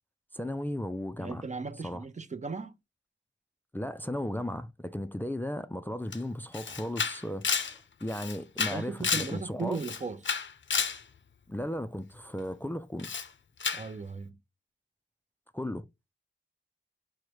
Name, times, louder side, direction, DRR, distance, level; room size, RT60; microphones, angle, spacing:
voice 1, 0.3-1.4 1.8-2.0 3.7-9.8 11.5-13.1 15.5-15.8, left 1 dB, 10° left, 0.4 m, -35 dB
voice 2, 1.2-2.7 8.6-10.4 13.7-14.4, right 4 dB, 35° right, 0.6 m, -37 dB
Camera, 6.1-6.2 6.5-9.4 9.7-11.0 13.0-13.3 13.6-13.9, left 6 dB, 65° left, 0.5 m, -31 dB
4.8 x 2.1 x 4.6 m
wide cardioid pair, 70°, 20 cm